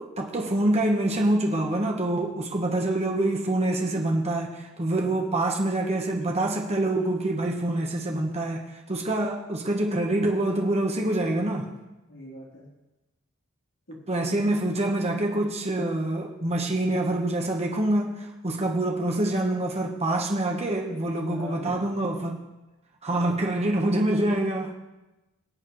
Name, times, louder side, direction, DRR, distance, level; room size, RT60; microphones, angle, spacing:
voice 1, 0.0-11.7 14.1-22.4 23.0-24.7, right 1 dB, 30° right, 1 dB, 1.3 m, -26 dB
voice 2, 4.9-5.4 12.1-12.7 13.9-14.4 21.1-21.9 23.1-24.0, equal, 60° left, -7 dB, 3.6 m, -41 dB
24.0 x 8.4 x 3.2 m, 1.1 s
head